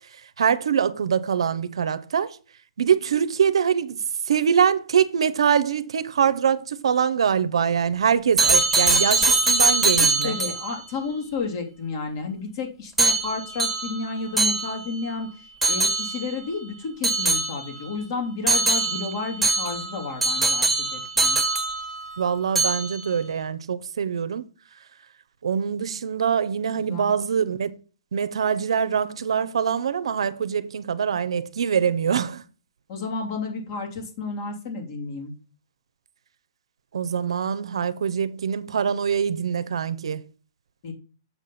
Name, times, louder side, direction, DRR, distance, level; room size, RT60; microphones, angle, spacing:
voice 1, 0.4-2.4 2.8-10.4 22.2-24.4 25.4-27.7 28.1-32.4 36.9-40.2, right 7 dB, 80° right, 0.7 m, -23 dB
sound 1, 8.4-10.8 13.0-15.1 15.6-16.4 17.0-17.9 18.5-22.2 22.5-23.1, right 3 dB, ahead, 1.7 m, -23 dB
voice 2, 10.2-21.4 26.9-27.1 32.9-35.3 40.8-40.9, left 4 dB, 45° left, 2.9 m, -31 dB
7.1 x 6.0 x 4.1 m
hypercardioid pair, 150°, 3 cm